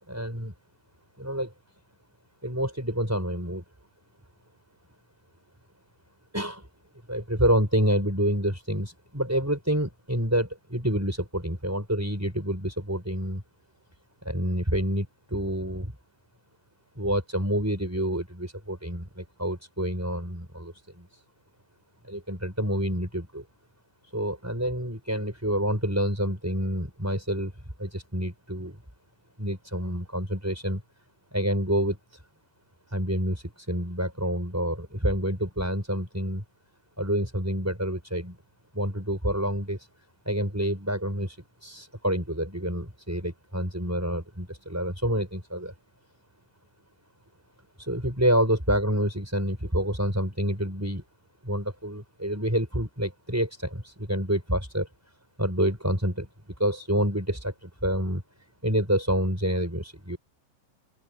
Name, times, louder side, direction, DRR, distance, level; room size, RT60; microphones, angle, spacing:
voice 1, 0.1-0.5 1.2-1.5 2.4-3.6 6.3-6.7 7.1-13.4 14.2-15.9 17.0-21.2 22.0-23.4 24.1-27.5 27.8-28.8 29.4-30.8 31.3-32.2 32.9-36.4 37.0-38.4 38.7-39.9 40.2-45.7 47.8-51.0 51.4-54.9 55.4-56.3 56.6-58.2 58.6-60.2, equal, 5° right, 4.6 m, -28 dB
open air
omnidirectional pair, 5.9 m